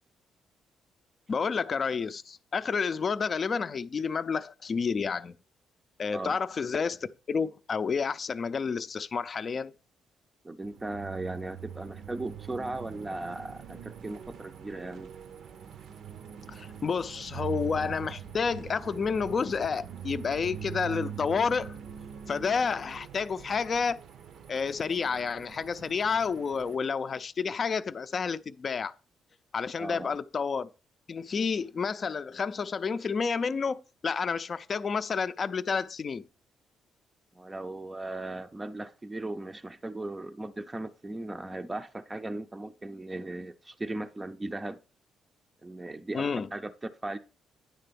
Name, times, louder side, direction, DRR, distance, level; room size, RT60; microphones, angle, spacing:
voice 1, 1.3-5.3 6.0-9.7 16.5-21.8 22.3-24.0 24.5-28.9 29.5-30.7 31.1-36.2 46.1-46.5, left 5 dB, 45° left, 0.5 m, -30 dB
voice 2, 10.4-15.1 29.8-30.2 37.3-44.8 45.6-47.2, right 2 dB, 20° right, 0.5 m, -37 dB
sound 1, 10.6-26.8, right 8 dB, 70° right, 0.7 m, -43 dB
9.7 x 3.3 x 6.9 m
cardioid pair, 90°, 0 cm